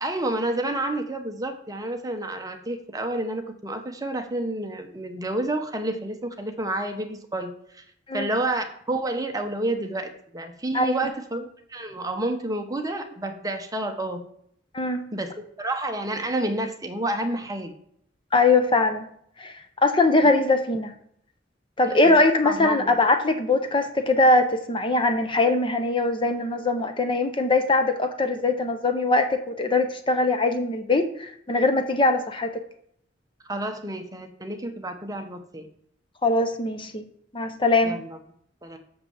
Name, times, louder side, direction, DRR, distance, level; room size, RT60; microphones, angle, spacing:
voice 1, 0.0-7.8 8.1-14.2 15.1-17.7 20.2-20.3 21.9-22.2 22.4-23.0 33.4-35.7 37.8-38.2 38.6-38.8, right 1 dB, 20° right, 5 dB, 1.0 m, -30 dB
voice 2, 14.7-15.1 18.3-19.1 19.4-19.5 19.8-20.9 21.8-32.5 36.2-37.0 37.3-38.0, left 2 dB, 30° left, 7 dB, 0.8 m, -21 dB
6.6 x 5.8 x 7.2 m, 0.66 s
head